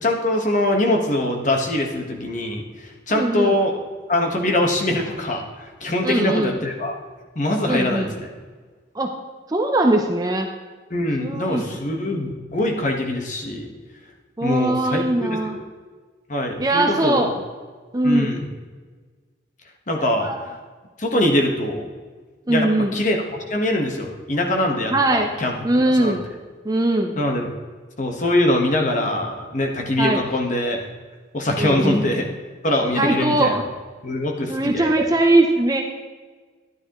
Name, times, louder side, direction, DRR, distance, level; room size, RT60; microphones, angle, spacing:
voice 1, 0.0-3.7 4.1-7.0 7.3-8.3 10.9-13.7 14.4-15.4 16.3-17.3 18.0-18.4 19.9-20.3 21.0-21.9 22.5-25.5 25.9-26.2 27.2-27.5 28.0-30.8 31.3-32.3 32.6-33.6 34.0-35.0, left 1 dB, 40° left, 2 dB, 1.3 m, -23 dB
voice 2, 3.1-3.5 6.0-6.5 7.7-8.1 8.9-9.1 9.5-10.5 11.2-11.6 14.4-15.6 16.6-17.3 17.9-18.4 20.0-20.4 22.5-23.0 24.9-25.3 25.6-26.2 26.6-27.2 30.0-30.2 31.6-32.0 33.0-33.6 34.5-35.8, right 2 dB, 20° right, 2 dB, 0.6 m, -20 dB
12.5 x 11.0 x 3.0 m, 1.4 s
head